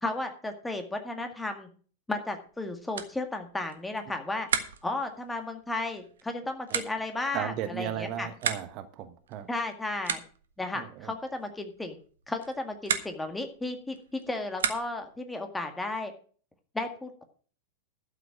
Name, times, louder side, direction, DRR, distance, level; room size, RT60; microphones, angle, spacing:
voice 1, 0.0-1.7 2.1-4.5 4.8-8.3 9.5-10.2 10.6-12.0 12.3-16.1 16.7-17.2, left 2 dB, 10° left, 6 dB, 1.9 m, -34 dB
sound 1, 2.4-15.2, right 7 dB, 65° right, 1.4 m, -38 dB
voice 2, 7.3-9.5 10.7-11.1, right 10 dB, 40° right, 10 dB, 1.2 m, -35 dB
12.0 x 7.3 x 6.3 m, 0.42 s
figure-of-eight pair, 90°, 0 cm